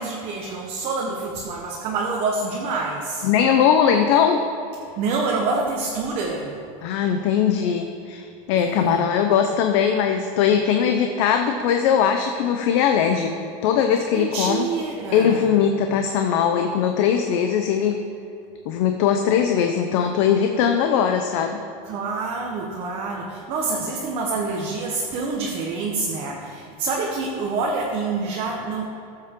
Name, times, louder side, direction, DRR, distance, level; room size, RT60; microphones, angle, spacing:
voice 1, 0.0-3.3 5.0-6.6 8.6-9.0 14.1-15.6 21.8-28.9, right 3 dB, 35° right, -2 dB, 1.1 m, -27 dB
voice 2, 3.2-4.4 6.8-13.3 13.6-14.7 15.1-18.0 18.7-21.6, left 8 dB, 55° left, 5 dB, 0.7 m, -20 dB
14.5 x 7.6 x 3.7 m, 2.7 s
supercardioid pair, 170°, 17 cm